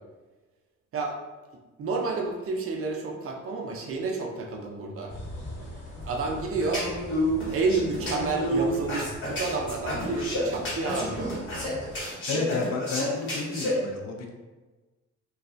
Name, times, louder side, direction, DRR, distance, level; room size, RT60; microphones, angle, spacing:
voice 1, 1.8-5.1 6.0-6.9 7.5-11.3, right 3 dB, 50° right, 1 dB, 0.4 m, -30 dB
sound 1, 5.1-12.0, left 1 dB, 90° left, 1.1 m, -42 dB
sound 2, 6.6-13.7, equal, 40° left, 1.1 m, -30 dB
voice 2, 12.2-14.4, left 4 dB, 60° left, 2 dB, 0.5 m, -31 dB
3.2 x 2.2 x 2.5 m, 1.2 s
wide cardioid pair, 155°, 30 cm